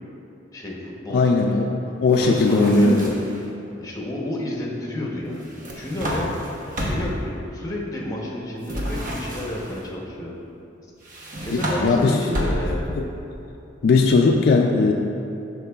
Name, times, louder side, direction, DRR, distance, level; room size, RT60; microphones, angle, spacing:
voice 1, 0.5-1.3 1.9-3.1 3.8-6.4 6.8-10.4 11.4-13.0, left 1 dB, 15° left, -3 dB, 0.8 m, -30 dB
voice 2, 1.1-3.2 11.5-12.2 13.0-13.1 13.8-14.9, left 3 dB, 55° left, 2 dB, 0.3 m, -18 dB
sound 1, 2.1-3.4 5.4-7.3 8.6-9.8 11.0-13.0, equal, 45° right, 0.9 m, -30 dB
12.0 x 4.6 x 2.3 m, 2.9 s
head